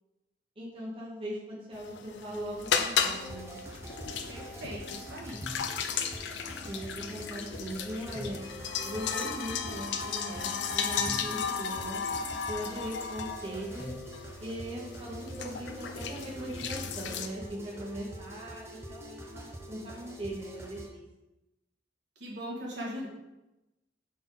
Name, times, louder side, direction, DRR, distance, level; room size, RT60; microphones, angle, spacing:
voice 1, 0.6-3.6 6.7-8.4 8.8-12.0 12.5-13.9 14.4-21.0, equal, 30° right, -5 dB, 1.1 m, -40 dB
sound 1, 1.8-17.3, left 6 dB, 80° left, 0.5 m, -35 dB
sound 2, 3.0-20.9, equal, 15° right, 0.8 m, -44 dB
voice 2, 4.3-5.4 22.2-23.1, equal, 70° right, -3 dB, 1.6 m, -39 dB
5.6 x 4.3 x 4.0 m, 0.98 s
head